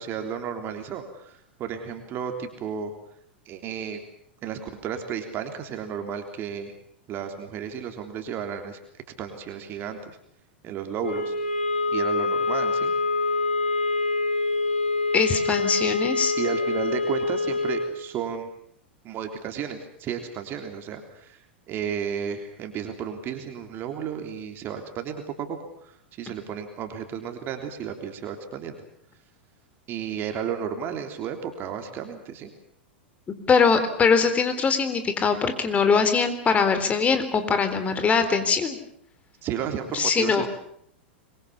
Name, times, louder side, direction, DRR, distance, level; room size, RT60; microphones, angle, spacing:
voice 1, 0.0-2.9 3.4-4.0 4.4-6.7 7.1-8.8 9.2-10.2 10.6-11.3 11.9-12.9 16.4-18.5 19.0-21.4 21.7-25.6 25.8-28.8 29.9-32.5 39.4-40.5, right 8 dB, 35° right, 5 dB, 3.4 m, -33 dB
sound 1, 11.0-18.0, left 3 dB, 80° left, 5.4 m, -25 dB
voice 2, 15.1-16.3 33.3-38.8 39.9-40.5, left 5 dB, 25° left, 10 dB, 3.8 m, -22 dB
26.0 x 22.0 x 7.2 m, 0.67 s
hypercardioid pair, 95°, 6 cm